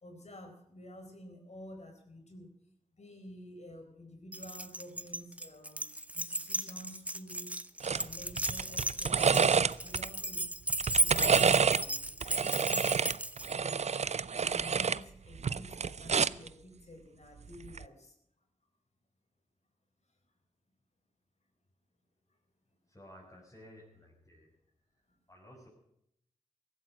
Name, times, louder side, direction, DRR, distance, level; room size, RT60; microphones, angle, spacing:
voice 1, 0.0-2.5 3.0-5.8 6.1-7.6 7.9-10.6 11.0-13.0 13.6-13.9 14.3-18.1, left 1 dB, 60° left, 4 dB, 4.3 m, -50 dB
Keys jangling, 4.3-13.5, right 2 dB, 10° right, 0.8 m, -35 dB
sound 1, 7.8-8.0 8.4-10.1 10.7-11.8 12.2-15.0 15.3-16.5 17.6-17.8, right 6 dB, 60° right, 0.5 m, -28 dB
voice 2, 22.9-24.5 25.3-25.7, equal, 25° left, -4 dB, 6.1 m, -54 dB
16.0 x 13.0 x 6.2 m, 0.75 s
cardioid pair, 40°, 13 cm